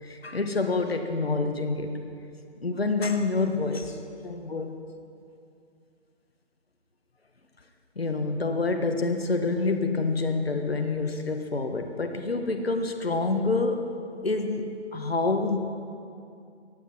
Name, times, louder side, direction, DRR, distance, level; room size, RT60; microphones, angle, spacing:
voice 1, 0.0-2.0 2.6-4.7 7.9-14.0 14.2-15.6, left 3 dB, 60° left, 6 dB, 1.6 m, -27 dB
19.5 x 12.0 x 5.8 m, 2.5 s
figure-of-eight pair, 155°, 35 cm